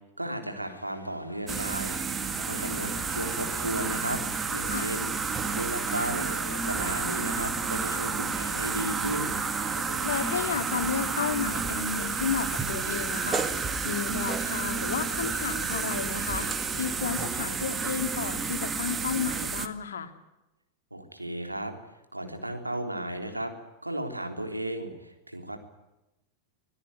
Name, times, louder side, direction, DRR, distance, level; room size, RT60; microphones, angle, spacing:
voice 1, 0.2-2.0 2.5-4.2 4.5-5.1 5.5-6.3 6.6-9.4 20.9-21.7 22.1-23.5 23.8-25.6, right 1 dB, 85° right, 5 dB, 3.6 m, -34 dB
sound 1, 0.6-19.4, left 2 dB, 85° left, 1.9 m, -47 dB
sound 2, 1.5-19.7, right 5 dB, 20° right, 1.9 m, -31 dB
voice 2, 10.0-20.1, left 7 dB, 65° left, 8 dB, 2.4 m, -32 dB
26.0 x 17.0 x 9.3 m, 1.0 s
figure-of-eight pair, 90°, 0 cm